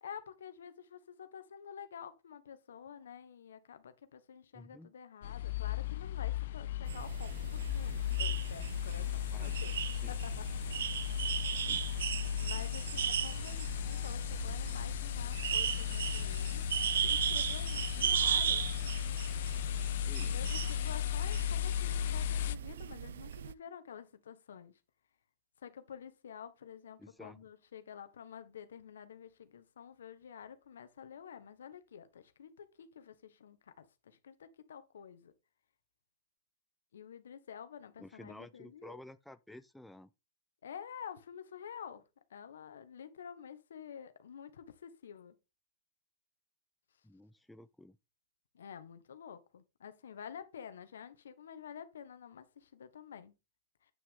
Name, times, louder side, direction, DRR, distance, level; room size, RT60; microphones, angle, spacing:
voice 1, 0.0-9.8 10.1-11.3 12.4-16.7 17.0-18.7 20.0-24.7 25.6-35.3 36.9-39.0 40.6-42.0 42.3-45.4 48.5-53.3, left 8 dB, 85° left, 1.3 m, -49 dB
voice 2, 4.5-4.9 9.3-9.5 10.0-10.2 11.7-11.9 20.1-20.5 27.0-27.4 38.0-40.1 47.0-48.0, left 1 dB, 5° left, 0.5 m, -52 dB
sound 1, 5.2-22.6, left 12 dB, 65° left, 0.5 m, -36 dB
sound 2, 6.9-23.5, right 9 dB, 80° right, 0.4 m, -37 dB
9.2 x 6.0 x 3.8 m
hypercardioid pair, 140°, 0 cm